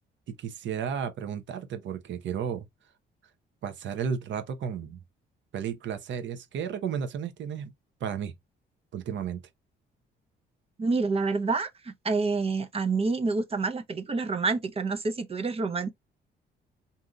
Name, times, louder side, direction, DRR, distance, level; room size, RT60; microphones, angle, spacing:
voice 1, 0.4-2.7 3.6-5.0 5.5-7.7 8.0-8.3 8.9-9.4, right 7 dB, 70° right, 0.8 m, -33 dB
voice 2, 10.8-15.9, right 4 dB, 30° right, 0.6 m, -28 dB
3.8 x 2.7 x 2.3 m
cardioid pair, 90°, 20 cm